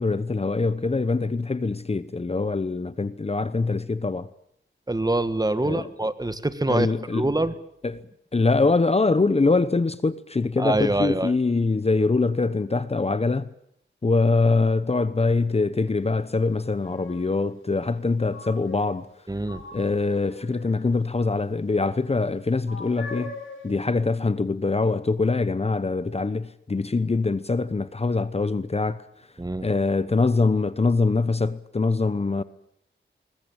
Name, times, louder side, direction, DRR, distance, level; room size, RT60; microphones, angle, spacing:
voice 1, 0.0-4.3 5.6-5.9 6.7-7.3 7.8-8.0 8.3-13.5 14.0-19.1 19.7-23.4 23.6-29.0 29.6-32.4, left 3 dB, 30° left, 0.9 m, -23 dB
voice 2, 4.9-7.5 10.6-11.3 19.3-19.6 29.4-29.7, right 2 dB, 20° right, 1.5 m, -25 dB
sound 1, 15.9-16.0 16.6-17.4 18.3-19.1 19.4-20.8 22.7-23.8, left 3 dB, 90° left, 5.6 m, -41 dB
21.5 x 20.5 x 8.9 m
wide cardioid pair, 75°, 20 cm